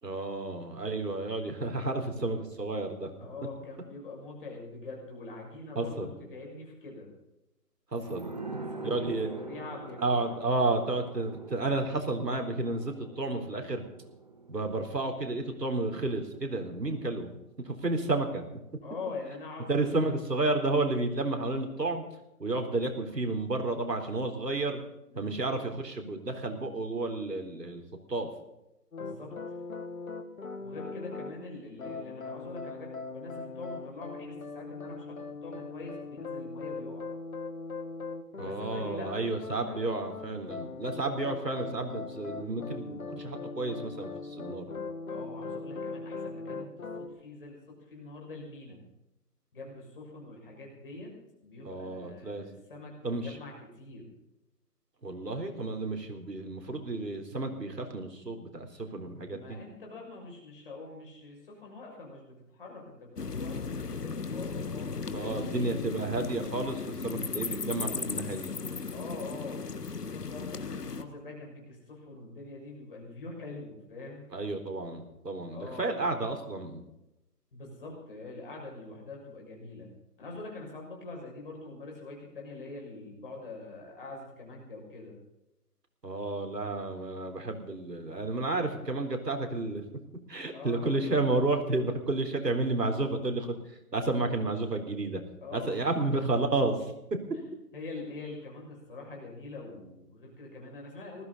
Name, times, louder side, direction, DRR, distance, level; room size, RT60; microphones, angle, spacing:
voice 1, 0.0-3.1 5.8-6.1 7.9-8.3 8.8-9.3 10.0-13.8 14.5-18.4 19.7-22.0 22.4-24.8 25.2-27.8 28.1-28.3 38.4-44.7 51.6-52.4 53.0-53.4 55.0-59.6 65.1-68.5 74.3-76.8 86.0-89.8 90.3-95.2 95.5-96.9, right 2 dB, 85° right, 5 dB, 4.1 m, -31 dB
voice 2, 3.2-7.1 8.5-10.4 18.8-20.1 25.1-25.4 29.0-29.4 30.6-37.1 38.3-40.0 45.1-48.8 49.5-51.1 51.4-54.1 59.2-65.5 68.9-74.3 75.5-75.9 77.5-79.9 80.2-85.1 90.5-91.5 95.4-96.1 97.3-97.4 97.7-101.2, left 3 dB, 35° left, -1 dB, 6.4 m, -44 dB
sound 1, 8.0-17.2 17.5-17.6, right 3 dB, 25° right, 0.9 m, -44 dB
sound 2, 28.9-31.3 31.8-47.1, left 4 dB, 60° left, 2.1 m, -40 dB
sound 3, 63.2-71.0, left 5 dB, 75° left, 1.7 m, -36 dB
20.0 x 16.0 x 4.1 m, 0.89 s
figure-of-eight pair, 170°, 48 cm